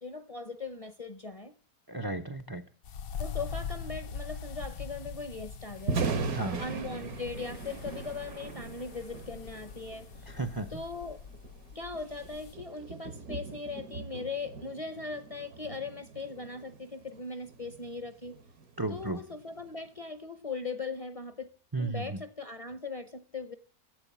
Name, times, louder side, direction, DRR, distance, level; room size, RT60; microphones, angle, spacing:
voice 1, 0.0-1.5 3.2-6.1 6.6-10.1 10.7-11.2 11.7-18.4 18.9-21.5 21.8-23.5, left 4 dB, 30° left, 0.6 m, -39 dB
voice 2, 1.9-2.6 6.3-6.6 10.3-10.7 18.8-19.2 21.7-22.2, right 2 dB, 30° right, 0.4 m, -34 dB
sound 1, 2.8-12.5, left 6 dB, 70° left, 1.2 m, -43 dB
Thunder, 5.7-19.9, right 4 dB, 75° right, 1.7 m, -40 dB
12.5 x 8.1 x 7.1 m
omnidirectional pair, 1.6 m